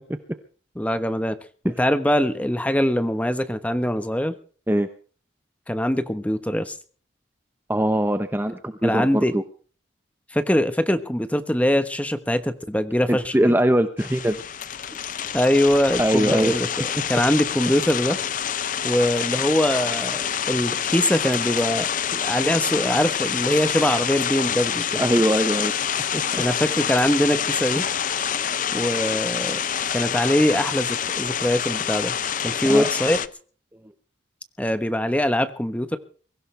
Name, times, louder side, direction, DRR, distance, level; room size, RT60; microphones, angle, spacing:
voice 1, 0.8-1.4 1.6-4.3 5.7-6.8 8.8-9.3 10.3-13.5 15.3-18.2 18.8-25.1 26.3-27.9 28.7-29.6 29.9-32.1 32.4-33.2 34.6-36.0, equal, 5° left, 10 dB, 1.1 m, -22 dB
voice 2, 7.7-9.4 13.1-14.4 16.0-16.5 24.9-25.9 26.1-26.4 32.6-32.9, right 1 dB, 10° right, 9 dB, 0.8 m, -22 dB
sound 1, 14.0-33.3, left 8 dB, 45° left, 0.6 m, -27 dB
23.0 x 16.0 x 3.4 m, 0.42 s
head